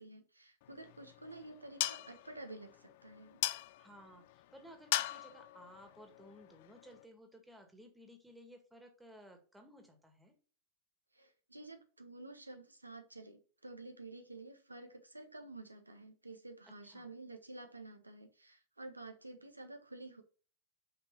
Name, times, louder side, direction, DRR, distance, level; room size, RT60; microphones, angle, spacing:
voice 1, 0.0-3.4 11.1-20.2, right 2 dB, 85° right, 1.0 m, -51 dB
sound 1, 0.6-7.0, left 15 dB, 50° left, 0.4 m, -41 dB
voice 2, 3.8-10.3 16.6-17.1, equal, 5° right, 1.9 m, -57 dB
5.8 x 5.5 x 5.4 m
figure-of-eight pair, 90°, 0 cm